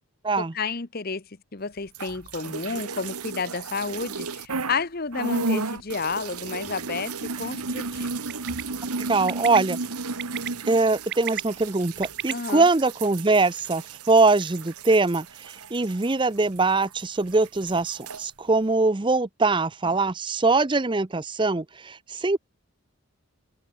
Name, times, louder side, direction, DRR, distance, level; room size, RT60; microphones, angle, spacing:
voice 1, 0.4-1.2 1.5-8.1 12.3-12.7, left 4 dB, 40° left, 0.9 m, -31 dB
sound 1, 1.9-4.8 5.1-17.0 17.3-18.2, right 3 dB, 90° right, 1.6 m, -34 dB
Bird, 8.3-8.6 9.3-9.6 10.2-10.5 11.0-12.3, right 11 dB, 50° right, 3.6 m, -32 dB
voice 2, 9.1-9.8 10.7-22.4, right 3 dB, 20° right, 0.6 m, -22 dB
open air
head